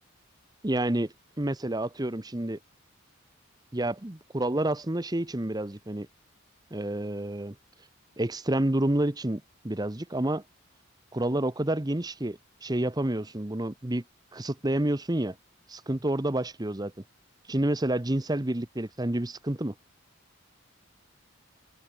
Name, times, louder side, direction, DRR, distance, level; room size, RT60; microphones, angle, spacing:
voice 1, 0.6-2.6 3.7-6.1 6.7-7.6 8.2-10.4 11.1-14.0 14.3-15.4 15.7-16.9 17.5-19.7, right 1 dB, 20° right, 0.9 m, -29 dB
head